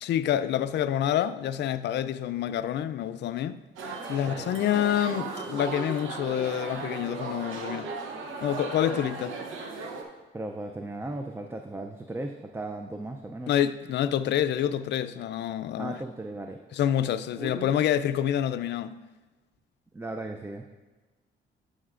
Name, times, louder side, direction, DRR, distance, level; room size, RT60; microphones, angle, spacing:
voice 1, 0.0-3.6 4.1-7.9 8.4-9.4 13.5-16.0 16.7-19.0, left 10 dB, 60° left, 0.4 m, -27 dB
sound 1, 3.8-10.0, right 4 dB, 80° right, 0.9 m, -36 dB
voice 2, 4.3-4.6 10.3-13.5 15.8-16.6 17.4-17.8 19.9-20.6, right 2 dB, 10° right, 0.4 m, -36 dB
11.0 x 6.3 x 2.5 m
cardioid pair, 90°, 20 cm